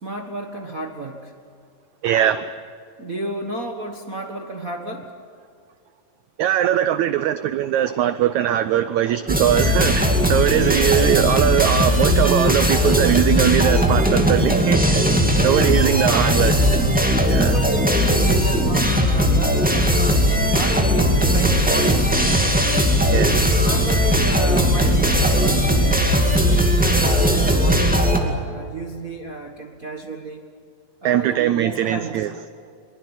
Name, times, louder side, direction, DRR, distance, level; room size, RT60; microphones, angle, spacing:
voice 1, 0.0-1.3 3.0-5.1 15.5-16.3 17.3-22.1 23.6-30.4 31.0-32.3, right 2 dB, 50° right, 2 dB, 1.0 m, -32 dB
voice 2, 2.0-2.5 6.4-15.0 15.4-16.5 17.3-17.6 23.1-23.3 31.0-32.3, right 11 dB, 80° right, 13 dB, 1.6 m, -20 dB
sound 1, 9.3-28.2, equal, 5° right, 1.5 m, -18 dB
23.5 x 21.0 x 8.9 m, 2.5 s
omnidirectional pair, 4.1 m